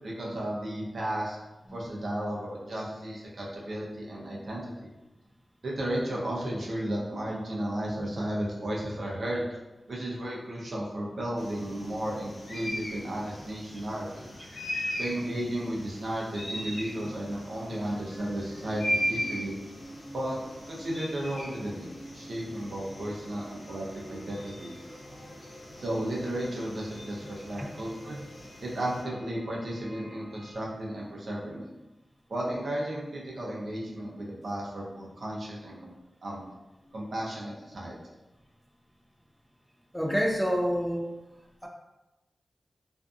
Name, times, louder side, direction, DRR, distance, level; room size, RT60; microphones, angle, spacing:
voice 1, 0.0-1.4 1.7-4.9 5.6-9.4 9.9-14.3 15.0-19.6 20.1-20.4 20.7-24.7 25.8-28.2 28.6-31.7 32.3-35.9 36.2-36.4 36.9-38.0, right 1 dB, 70° right, -4 dB, 0.6 m, -34 dB
sound 1, 11.4-29.0, equal, 75° left, 0.7 m, -39 dB
sound 2, 15.8-30.5, right 1 dB, 25° left, 0.7 m, -50 dB
voice 2, 39.9-41.1 41.6-41.7, equal, ahead, -1 dB, 0.4 m, -28 dB
2.5 x 2.3 x 2.5 m, 1.0 s
cardioid pair, 60°, 0 cm